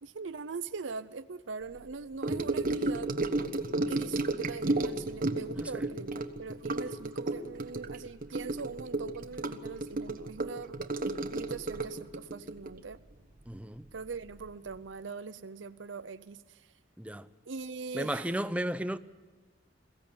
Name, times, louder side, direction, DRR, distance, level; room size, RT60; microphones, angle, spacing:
voice 1, 0.0-3.1 3.9-10.8 11.3-13.0 13.9-16.7 17.5-18.4, right 5 dB, 85° right, 0.7 m, -41 dB
Gurgling / Sink (filling or washing) / Trickle dribble, 2.2-13.9 14.1-14.5 14.7-14.8, right 2 dB, 50° right, 1.3 m, -33 dB
voice 2, 5.6-5.9 13.5-13.9 17.0-17.3 17.9-19.0, right 1 dB, 5° right, 0.7 m, -34 dB
22.0 x 16.0 x 8.7 m
head